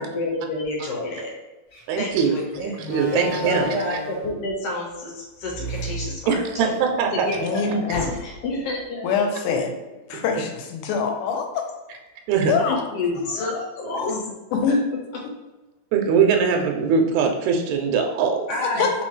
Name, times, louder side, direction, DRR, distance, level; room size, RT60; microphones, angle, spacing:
voice 1, 0.0-1.3 2.0-6.7 7.1-7.9 8.2-9.2 12.5-14.3 14.7-14.8 18.5-19.0, left 2 dB, 70° left, -1 dB, 1.6 m, -29 dB
Slam, 1.7-1.9 2.8-4.4 5.4-6.8 7.2-7.3 7.9-8.5, equal, 45° left, 1.2 m, -32 dB
voice 2, 1.9-3.7 6.3-7.3 7.9-8.0 10.1-10.2 12.3-12.5 15.9-18.5, right 6 dB, 80° right, 3 dB, 1.9 m, -21 dB
voice 3, 7.3-8.1 9.0-9.8 10.1-11.7 12.5-12.8 13.3-13.5 13.9-14.1 14.5-14.8 15.2-15.3 18.6-19.0, left 5 dB, 85° left, 3 dB, 2.1 m, -24 dB
4.3 x 3.8 x 3.1 m, 1.1 s
omnidirectional pair, 3.5 m